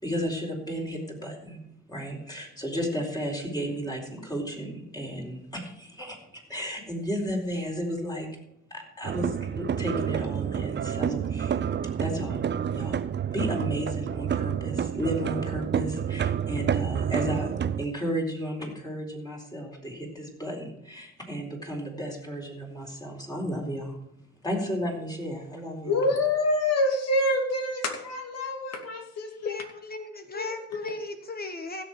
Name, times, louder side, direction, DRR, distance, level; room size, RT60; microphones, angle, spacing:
voice 1, 0.0-1.6 1.9-8.3 8.7-11.6 12.0-12.4 12.7-13.0 13.3-17.5 17.8-24.0 24.4-26.0, equal, 15° left, -1 dB, 4.2 m, -33 dB
sound 1, 9.0-17.8, right 8 dB, 35° right, 0.6 m, -29 dB
voice 2, 25.8-29.6 30.3-30.5 30.8-30.9, left 2 dB, 55° left, 3 dB, 2.8 m, -26 dB
voice 3, 29.4-31.8, left 2 dB, 30° left, 7 dB, 1.2 m, -37 dB
16.0 x 6.9 x 4.8 m, 0.78 s
cardioid pair, 90°, 30 cm